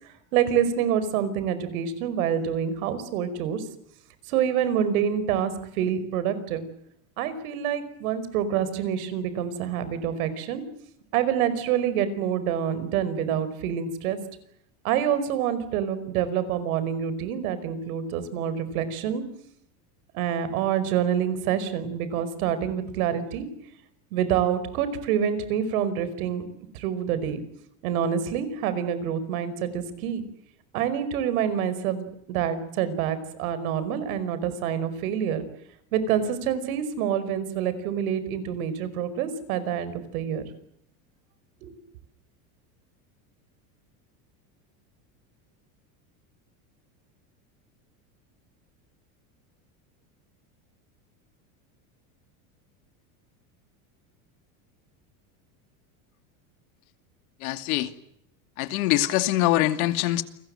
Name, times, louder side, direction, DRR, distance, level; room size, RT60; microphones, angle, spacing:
voice 1, 0.3-3.6 4.3-6.6 7.2-10.6 11.1-14.2 14.8-19.2 20.1-23.5 24.1-26.4 26.7-27.4 27.8-30.2 30.7-35.4 35.9-40.4 41.6-41.7, right 9 dB, 80° right, 13 dB, 5.2 m, -27 dB
voice 2, 57.4-57.9 58.6-60.2, left 15 dB, 75° left, 10 dB, 2.6 m, -23 dB
29.5 x 22.5 x 7.9 m, 0.74 s
cardioid pair, 180°, 43 cm